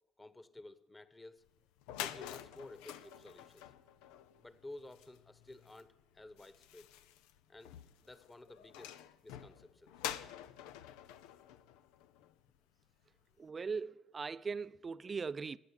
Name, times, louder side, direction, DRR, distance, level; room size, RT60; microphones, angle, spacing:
voice 1, 0.2-1.5 2.0-3.7 4.4-6.9 7.5-7.7 8.0-9.9, left 2 dB, 20° left, 1.4 m, -53 dB
sound 1, 1.5-1.6 1.8-12.6, left 11 dB, 80° left, 0.7 m, -48 dB
voice 2, 13.4-15.6, right 5 dB, 35° right, 0.6 m, -39 dB
15.0 x 9.3 x 9.9 m
hypercardioid pair, 65°, 0 cm